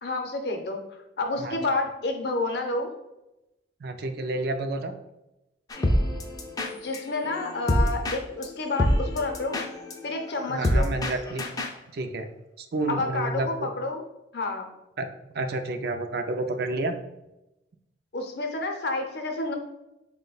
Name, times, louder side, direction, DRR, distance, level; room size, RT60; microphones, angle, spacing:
voice 1, 0.0-2.9 6.8-9.6 10.0-10.9 12.9-14.0 14.3-14.7 18.1-19.6, left 2 dB, 60° left, 3 dB, 0.6 m, -29 dB
voice 2, 3.8-4.9 10.5-11.4 11.9-12.3 12.6-13.7 15.0-15.1 15.3-17.0, right 2 dB, 55° right, 7 dB, 0.4 m, -30 dB
sound 1, 5.7-11.8, equal, 20° left, 0.3 m, -27 dB
4.6 x 2.1 x 3.9 m, 0.93 s
head